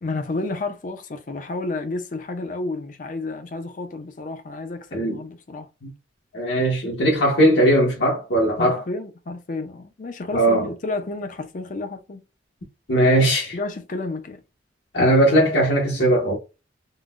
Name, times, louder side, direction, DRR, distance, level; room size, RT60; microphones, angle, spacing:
voice 1, 0.0-5.7 8.6-12.2 13.5-14.4, left 2 dB, 45° left, 0.5 m, -31 dB
voice 2, 4.9-5.2 5.8-5.9 6.3-8.8 10.3-10.7 12.9-13.6 14.9-16.4, right 1 dB, 75° left, 0.9 m, -19 dB
3.7 x 2.1 x 2.3 m
head